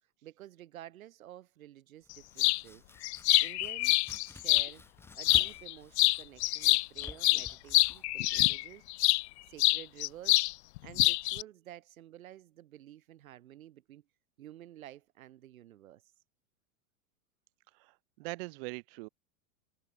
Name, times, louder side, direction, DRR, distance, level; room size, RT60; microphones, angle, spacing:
voice 1, 0.2-2.8 3.4-4.0 4.3-4.8 5.1-8.9 9.5-10.4 10.8-14.1 14.4-16.0, right 13 dB, 85° right, 3.4 m, -51 dB
Domestic sounds home sounds, 2.0-9.8, left 3 dB, 5° left, 4.4 m, -54 dB
sound 1, 2.4-2.6 3.0-4.7 5.2-5.7 6.0-9.2 9.6-10.5 10.8-11.4, left 19 dB, 55° left, 0.7 m, -26 dB
voice 2, 17.7-19.1, right 26 dB, 45° right, 1.3 m, -42 dB
supercardioid pair, 160°, 40 cm